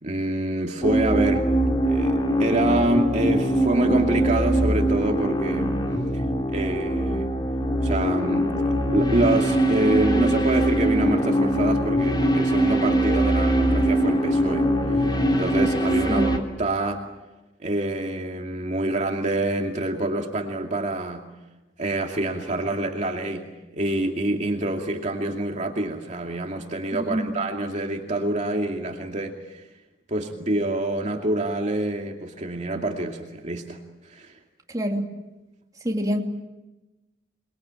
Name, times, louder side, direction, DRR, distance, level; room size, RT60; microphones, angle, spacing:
voice 1, 0.0-1.6 1.9-5.8 6.1-7.3 7.8-8.6 8.9-17.0 17.6-21.3 21.8-29.6 30.1-33.8 34.0-34.3, right 1 dB, 40° right, 2 dB, 2.5 m, -27 dB
sound 1, 0.8-16.4, right 1 dB, 25° left, 3.3 m, -22 dB
voice 2, 26.9-27.3 34.7-35.1 35.8-36.2, equal, 20° right, 1 dB, 2.9 m, -26 dB
28.5 x 22.5 x 8.9 m, 1.1 s
head